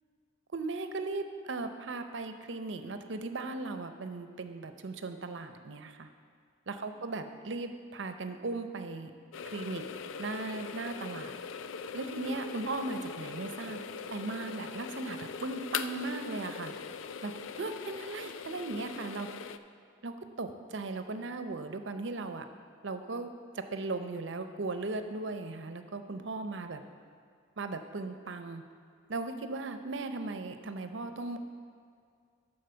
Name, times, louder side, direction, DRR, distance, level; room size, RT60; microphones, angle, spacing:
voice 1, 0.5-6.1 6.7-9.1 9.5-9.8 10.2-11.3 11.9-13.8 14.1-16.7 17.2-19.3 20.0-22.4 22.8-23.3 23.6-26.8 27.6-28.6 29.1-31.4, right 3 dB, 65° right, 8 dB, 0.6 m, -37 dB
sound 1, 9.3-19.6, left 6 dB, 80° left, 0.4 m, -41 dB
12.0 x 4.1 x 6.7 m, 2.2 s
head